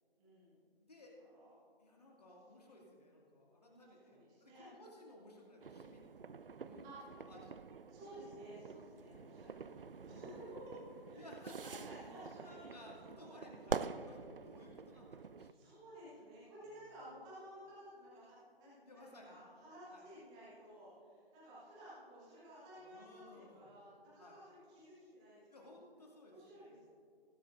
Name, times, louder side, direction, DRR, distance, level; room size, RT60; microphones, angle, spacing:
voice 1, 0.2-0.5 1.3-1.5 3.6-4.7 6.8-7.0 7.9-10.8 11.1-11.3 11.8-12.6 13.0-13.8 15.5-25.7 26.2-26.8, equal, 5° right, -10 dB, 1.3 m, -55 dB
voice 2, 1.8-7.8 8.8-9.3 11.1-11.8 12.4-15.7 16.6-16.9 18.8-19.4 19.9-20.1 22.7-23.7 24.2-24.4 25.5-26.8, left 1 dB, 40° left, -2 dB, 2.4 m, -58 dB
sound 1, 5.6-15.5, right 5 dB, 65° right, 0.4 m, -47 dB
19.5 x 11.0 x 2.6 m, 2.3 s
figure-of-eight pair, 160°, 31 cm